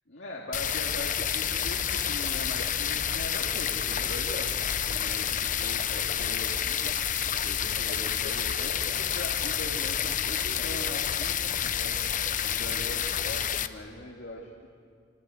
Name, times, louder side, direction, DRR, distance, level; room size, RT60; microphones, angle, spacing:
voice 1, 0.1-6.9 7.3-12.0 12.4-14.7, left 1 dB, 80° left, -2 dB, 2.9 m, -41 dB
sound 1, 0.5-13.7, left 9 dB, 45° left, 0.8 m, -29 dB
27.5 x 25.5 x 8.1 m, 2.1 s
head